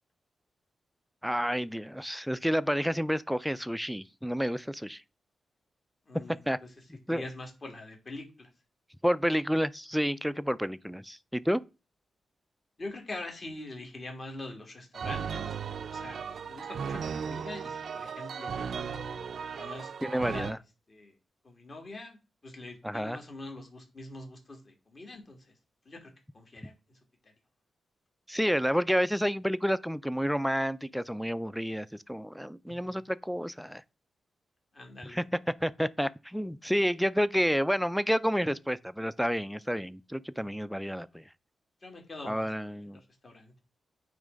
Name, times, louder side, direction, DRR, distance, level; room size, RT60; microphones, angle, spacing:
voice 1, 1.2-5.0 6.5-6.6 7.1-7.2 9.0-11.6 20.0-20.6 22.8-23.2 28.3-33.8 35.1-35.2 35.6-41.2 42.3-43.0, equal, ahead, 0.3 m, -30 dB
voice 2, 6.1-6.7 7.1-8.5 12.8-15.6 15.9-18.6 19.6-20.6 20.9-21.1 21.4-22.2 22.4-25.5 25.9-27.0 27.2-27.3 32.7-33.0 34.7-35.2 40.4-40.5 41.8-42.5 42.9-43.5, left 2 dB, 35° left, 2.0 m, -44 dB
sound 1, 14.9-20.5, right 6 dB, 65° right, 0.4 m, -36 dB
9.1 x 3.2 x 5.1 m
wide cardioid pair, 115°, 0 cm